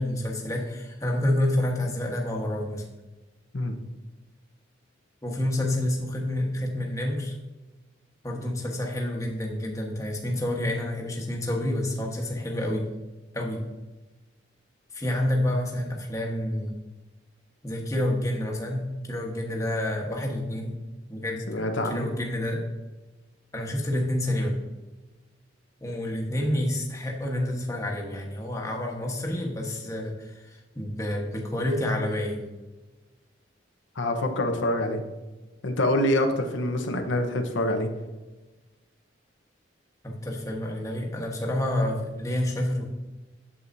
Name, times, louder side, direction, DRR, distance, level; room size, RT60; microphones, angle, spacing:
voice 1, 0.0-2.8 5.2-7.3 8.2-12.9 13.3-13.6 14.9-16.7 17.6-20.7 21.1-21.5 21.9-22.6 23.5-24.6 25.8-32.4 40.0-42.8, left 1 dB, 15° left, 0 dB, 1.2 m, -28 dB
voice 2, 21.5-22.1 34.0-35.0 35.6-37.9, left 1 dB, 80° left, 4 dB, 0.9 m, -25 dB
8.6 x 7.8 x 2.7 m, 1.1 s
head